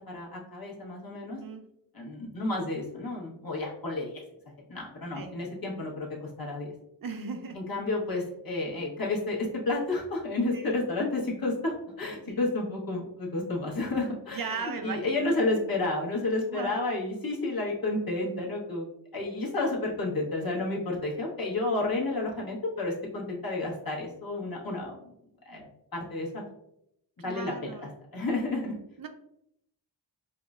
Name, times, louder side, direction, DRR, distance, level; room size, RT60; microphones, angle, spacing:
voice 1, 0.1-1.4 1.9-4.2 4.7-6.7 7.5-25.0 25.4-26.3 27.2-28.7, left 2 dB, 50° left, -4 dB, 1.1 m, -31 dB
voice 2, 1.1-1.6 5.1-5.3 7.0-7.6 10.5-10.7 12.3-12.4 14.3-15.3 16.5-16.8 27.3-27.9 29.0-29.1, right 5 dB, 50° right, 6 dB, 0.5 m, -37 dB
4.7 x 2.1 x 2.4 m, 0.78 s
wide cardioid pair, 65°, 44 cm